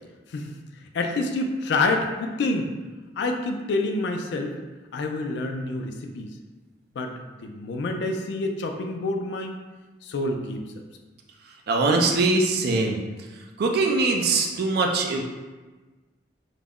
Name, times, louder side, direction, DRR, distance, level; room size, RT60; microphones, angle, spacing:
voice 1, 0.9-2.7 3.2-4.6 4.9-6.3 7.0-7.1 7.4-9.6 10.0-10.8, left 2 dB, 70° left, 4 dB, 0.3 m, -27 dB
voice 2, 11.7-13.0 13.6-15.2, right 3 dB, 60° right, 2 dB, 0.4 m, -22 dB
2.4 x 2.1 x 3.4 m, 1.2 s
head